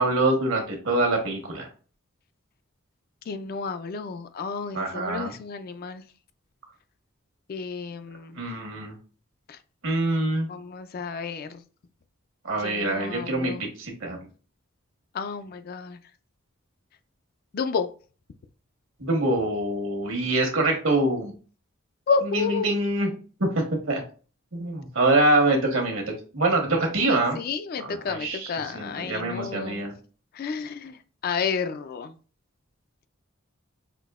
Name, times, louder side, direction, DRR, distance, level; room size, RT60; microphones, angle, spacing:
voice 1, 0.0-1.7 4.7-5.3 8.4-8.9 9.8-10.5 12.4-14.2 19.0-21.3 22.2-23.1 23.4-24.0 24.5-26.0 26.3-27.4 27.8-29.9, right 2 dB, 75° right, 1.3 m, -25 dB
voice 2, 3.3-6.0 7.5-8.4 10.5-11.6 12.6-13.6 15.1-16.0 17.5-17.9 22.1-22.8 27.0-29.8 30.4-30.9 31.2-32.1, left 5 dB, 45° left, 0.4 m, -31 dB
5.8 x 2.6 x 2.4 m
head